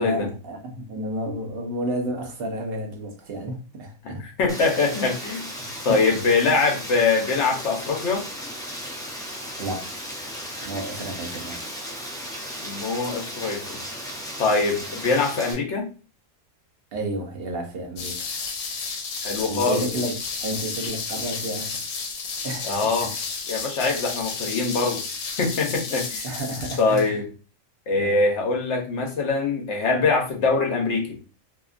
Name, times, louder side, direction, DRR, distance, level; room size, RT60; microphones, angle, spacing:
voice 1, 0.0-4.2 5.6-6.0 9.6-9.9 10.6-11.6 16.9-18.3 19.4-21.8 22.4-23.2 26.2-27.2 28.0-28.2, right 1 dB, 55° right, 0.8 m, -31 dB
voice 2, 4.0-5.5 5.8-8.3 12.6-13.8 14.4-15.9 19.2-19.9 22.6-23.1 23.5-25.0 25.4-26.3 26.8-27.3 27.9-31.2, left 4 dB, 65° left, 1.0 m, -23 dB
Rain, 4.5-15.5, equal, 5° left, 0.4 m, -35 dB
sound 1, 18.0-27.1, left 4 dB, 85° left, 1.0 m, -32 dB
2.7 x 2.3 x 2.4 m
omnidirectional pair, 1.3 m